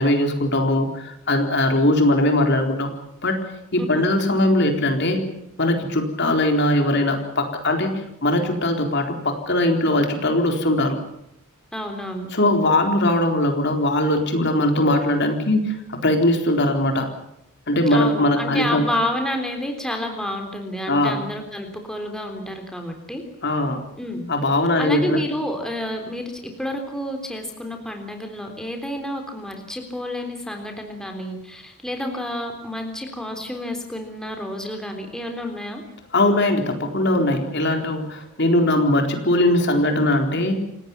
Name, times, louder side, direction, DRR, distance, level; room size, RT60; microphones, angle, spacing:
voice 1, 0.0-2.9 3.2-5.3 5.6-11.0 12.3-15.8 16.0-17.1 17.7-18.9 20.9-21.2 23.4-23.8 24.3-25.2 36.1-40.6, left 1 dB, 50° left, 4 dB, 4.0 m, -20 dB
voice 2, 3.8-4.1 11.7-12.3 17.9-23.2 24.0-24.2 24.8-26.3 26.6-35.8, left 1 dB, 5° left, 4 dB, 3.6 m, -29 dB
28.5 x 18.0 x 7.3 m, 0.78 s
head